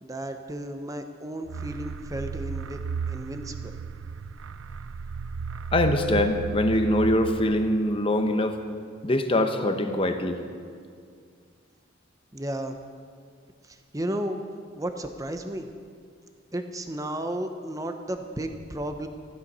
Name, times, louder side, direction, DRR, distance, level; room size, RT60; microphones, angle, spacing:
voice 1, 0.0-3.8 12.3-12.8 13.6-14.4 14.8-15.7 16.5-19.1, right 1 dB, 15° right, 6 dB, 0.8 m, -33 dB
sound 1, 1.5-8.0, right 6 dB, 90° right, 0.5 m, -35 dB
voice 2, 5.7-8.6 9.0-10.4, left 1 dB, 30° left, 7 dB, 0.9 m, -23 dB
15.0 x 11.0 x 5.5 m, 2.2 s
head